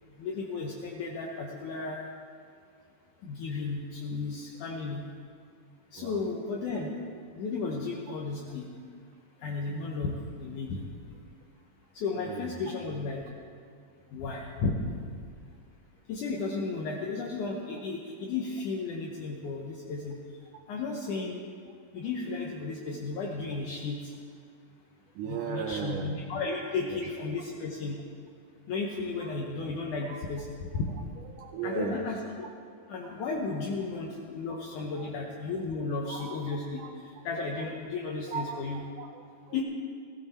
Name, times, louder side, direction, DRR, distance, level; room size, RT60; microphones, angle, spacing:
voice 1, 0.2-2.1 3.2-5.1 5.9-7.0 7.3-8.7 9.4-10.9 11.9-13.3 14.1-14.8 16.1-20.2 20.7-21.4 21.9-24.1 25.2-28.0 28.7-30.9 31.6-32.2 32.9-38.8 39.5-39.6, left 4 dB, 70° left, -1 dB, 2.3 m, -34 dB
voice 2, 12.2-12.7 25.2-26.5 26.8-27.1 29.2-29.3 30.1-30.2 31.2-32.1 33.0-33.2 35.0-35.1 36.1-36.9 37.6-37.7 38.3-38.6 39.0-39.6, right 7 dB, 75° right, 2 dB, 2.1 m, -38 dB
16.5 x 15.5 x 4.3 m, 2.2 s
omnidirectional pair, 4.1 m